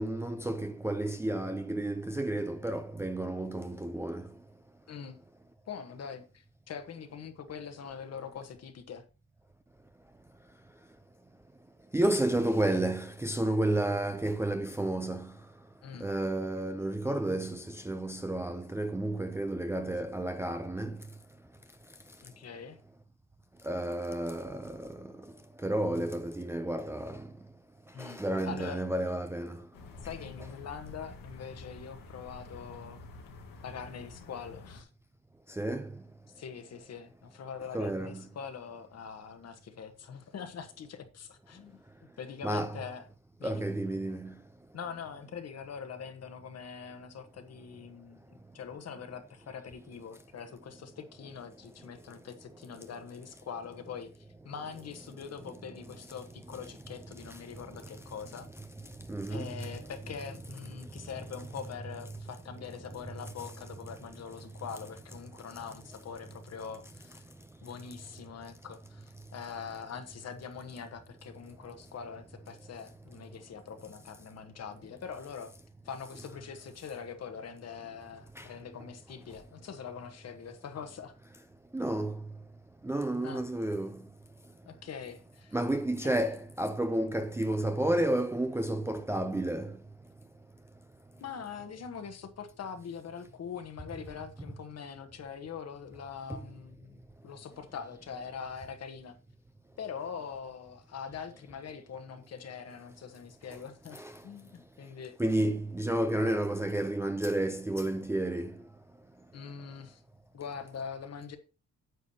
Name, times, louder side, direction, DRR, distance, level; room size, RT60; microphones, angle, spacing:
voice 1, 0.0-4.3 11.9-15.3 16.0-21.0 23.6-25.1 25.6-27.3 28.0-29.6 35.5-36.0 37.7-38.2 42.4-42.8 43.4-44.3 59.1-59.6 78.4-78.5 81.7-82.1 82.8-84.0 85.5-89.8 96.3-96.4 103.9-104.1 105.2-108.6, right 1 dB, 10° right, 0.5 m, -31 dB
voice 2, 4.9-5.2 5.7-9.0 15.8-16.1 22.2-22.8 27.9-28.8 30.0-33.0 33.6-34.9 36.4-41.8 42.2-43.1 43.4-43.6 44.7-54.1 54.4-58.5 59.3-67.2 67.6-75.5 75.8-81.1 83.2-83.4 84.7-85.6 86.0-86.1 91.2-99.2 99.8-105.2 109.3-110.0 110.3-111.4, left 7 dB, 50° left, 1.3 m, -43 dB
sound 1, 29.7-34.8, left 2 dB, 90° left, 1.8 m, -48 dB
9.4 x 8.2 x 2.8 m
cardioid pair, 150°, 32 cm